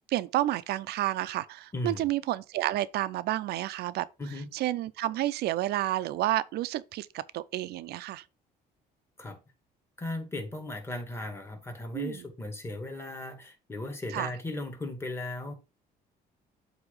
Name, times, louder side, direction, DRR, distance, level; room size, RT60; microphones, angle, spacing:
voice 1, 0.1-4.1 4.5-8.2 11.9-12.2 14.1-14.3, right 15 dB, 75° right, 0.6 m, -30 dB
voice 2, 1.7-2.1 4.2-4.5 9.2-9.4 10.0-15.5, left 2 dB, 15° left, 1.9 m, -37 dB
8.0 x 2.9 x 5.4 m
cardioid pair, 110°, 17 cm